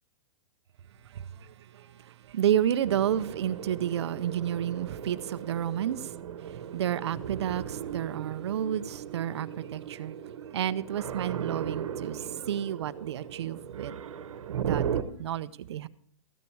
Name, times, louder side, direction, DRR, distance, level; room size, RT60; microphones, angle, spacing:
voice 1, 1.0-6.0 6.7-10.2 10.5-14.0 14.6-15.9, right 10 dB, 55° right, 0.6 m, -31 dB
sound 1, 2.8-15.0, right 8 dB, 80° right, 1.1 m, -37 dB
14.5 x 9.9 x 4.7 m
supercardioid pair, 180°, 17 cm